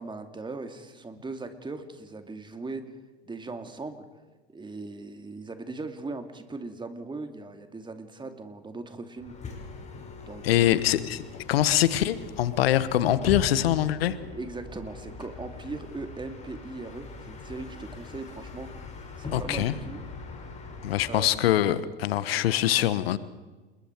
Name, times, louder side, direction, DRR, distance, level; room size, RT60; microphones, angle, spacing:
voice 1, 0.0-3.0 3.2-4.0 4.5-9.3 10.2-10.8 14.3-18.7 19.2-20.0 21.1-21.3, right 3 dB, 15° right, 7 dB, 2.6 m, -39 dB
Bus, 9.2-21.6, left 3 dB, 20° left, 5.5 m, -41 dB
voice 2, 10.4-14.2 19.3-19.7 20.8-23.2, left 12 dB, 70° left, 15 dB, 1.3 m, -24 dB
28.0 x 22.0 x 4.7 m, 1.3 s
hypercardioid pair, 85°, 31 cm